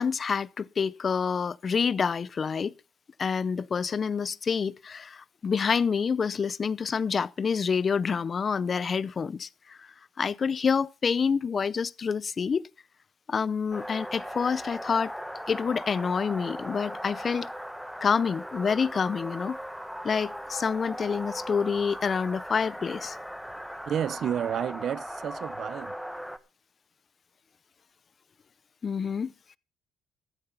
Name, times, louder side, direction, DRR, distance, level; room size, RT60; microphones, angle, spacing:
voice 1, 0.0-2.8 3.2-9.9 10.2-12.7 13.3-15.1 15.5-17.5 18.0-19.6 20.0-23.2 28.8-29.3, left 6 dB, 45° left, 0.6 m, -27 dB
sound 1, 13.7-26.4, equal, ahead, 1.3 m, -38 dB
voice 2, 23.9-26.0, right 9 dB, 65° right, 0.7 m, -30 dB
14.5 x 12.5 x 3.9 m
cardioid pair, 90°, 0 cm